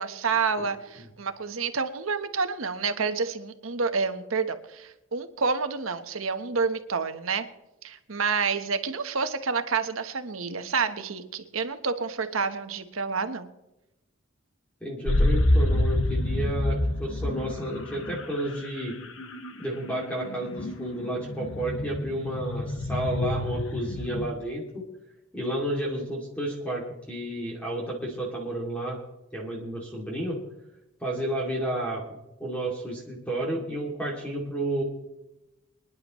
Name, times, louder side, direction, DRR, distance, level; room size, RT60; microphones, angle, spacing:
voice 1, 0.0-7.5 7.8-13.5, right 5 dB, 85° right, 9 dB, 1.1 m, -29 dB
voice 2, 14.8-19.0 19.6-24.9 25.3-26.8 27.1-29.0 29.3-30.4 31.0-32.0 32.4-34.8, right 1 dB, 5° left, -3 dB, 2.5 m, -31 dB
sound 1, 15.1-24.3, left 1 dB, 70° left, 1.1 m, -27 dB
25.5 x 10.5 x 3.1 m, 0.95 s
head